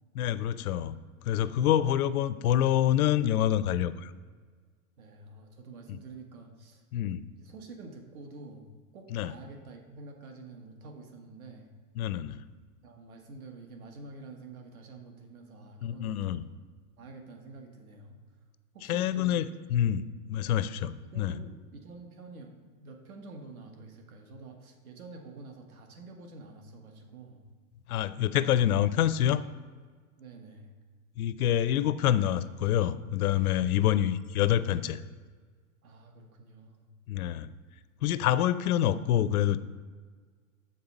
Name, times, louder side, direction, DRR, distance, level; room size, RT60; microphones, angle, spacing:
voice 1, 0.1-1.0 1.2-4.1 6.9-7.2 9.1-9.3 12.0-12.4 15.8-16.4 18.9-21.4 27.9-29.4 31.2-35.0 37.1-37.5 38.0-39.6, left 11 dB, 80° left, 14 dB, 0.5 m, -27 dB
voice 2, 5.0-6.8 7.4-8.7 8.9-11.7 12.8-16.4 17.0-18.2 18.7-19.4 20.4-20.6 21.1-22.5 22.8-27.4 30.2-30.8 33.7-34.1 35.8-36.9, right 3 dB, 75° right, 4 dB, 1.4 m, -48 dB
7.6 x 5.4 x 4.0 m, 1.5 s
supercardioid pair, 180°, 43 cm